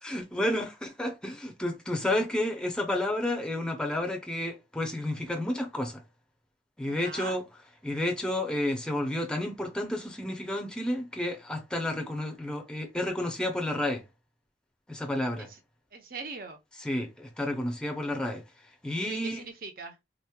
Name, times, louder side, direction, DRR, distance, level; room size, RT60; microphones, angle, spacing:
voice 1, 0.0-6.0 6.8-7.4 7.8-14.0 14.9-15.5 16.8-18.4 18.8-19.4, left 1 dB, 5° left, 0.6 m, -31 dB
voice 2, 6.8-7.4 15.4-15.6 15.9-16.6 19.0-20.0, right 3 dB, 50° right, 0.8 m, -41 dB
3.8 x 3.0 x 2.3 m
head